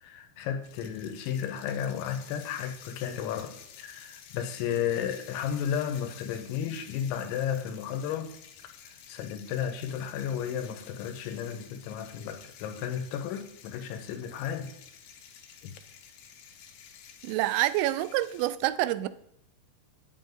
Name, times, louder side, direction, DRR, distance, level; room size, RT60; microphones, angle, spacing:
voice 1, 0.0-8.3 8.6-8.7 9.1-14.7 15.6-15.7, left 8 dB, 90° left, 3.3 m, -33 dB
sound 1, 0.6-18.5, left 8 dB, 70° left, 2.8 m, -51 dB
voice 2, 17.2-19.1, right 15 dB, 85° right, 2.9 m, -27 dB
9.0 x 8.7 x 3.9 m
omnidirectional pair, 5.2 m